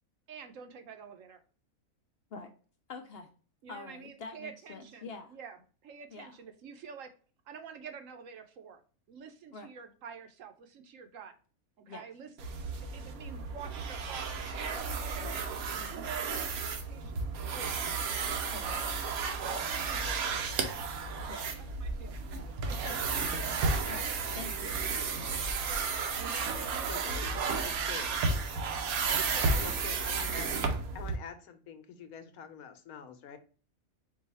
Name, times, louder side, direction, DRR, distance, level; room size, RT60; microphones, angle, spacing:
voice 1, 0.3-1.4 3.6-5.6 5.8-7.1 7.5-8.8 9.1-11.3 11.8-12.3 12.9-15.5 15.9-17.2 17.5-17.8 18.2-18.5 19.4-20.7 21.8-22.2 22.4-23.2 25.5-27.2 29.1-29.6, right 6 dB, 70° right, 7 dB, 1.0 m, -48 dB
voice 2, 2.9-3.3 3.7-5.3 6.1-6.3 9.5-9.7 11.9-12.0 18.5-18.9 21.3-21.5 22.8-23.0 23.8-24.8, left 4 dB, 60° left, 6 dB, 0.7 m, -45 dB
sound 1, 12.4-31.2, right 4 dB, 85° right, 1.2 m, -33 dB
voice 3, 26.9-27.2 27.6-28.1 29.6-30.5 30.9-33.4, left 7 dB, 90° left, 8 dB, 1.2 m, -46 dB
4.7 x 2.4 x 4.0 m, 0.39 s
omnidirectional pair, 1.5 m